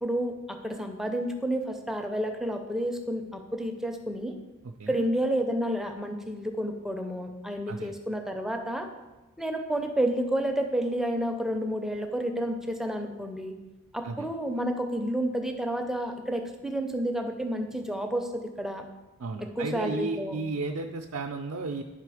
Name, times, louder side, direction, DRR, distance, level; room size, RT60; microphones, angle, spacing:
voice 1, 0.0-4.3 4.9-8.9 9.4-13.5 13.9-18.8 19.4-20.4, right 1 dB, ahead, 4 dB, 0.5 m, -30 dB
voice 2, 4.6-5.0 7.7-7.9 14.0-14.3 19.2-21.8, right 3 dB, 65° right, 4 dB, 0.5 m, -34 dB
10.5 x 3.7 x 4.9 m, 1.2 s
head